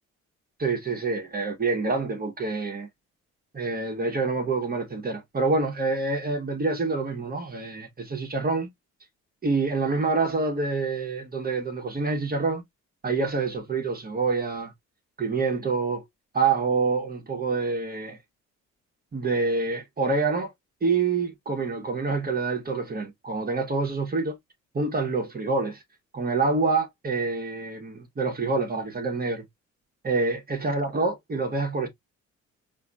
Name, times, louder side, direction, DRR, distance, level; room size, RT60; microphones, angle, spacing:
voice 1, 0.6-2.9 3.5-8.7 9.4-12.6 13.0-14.7 15.2-16.0 16.3-18.2 19.1-20.5 20.8-24.4 24.7-25.8 26.1-29.4 30.0-31.9, right 4 dB, 30° right, 1.2 m, -26 dB
4.7 x 2.7 x 2.2 m
cardioid pair, 90°, 30 cm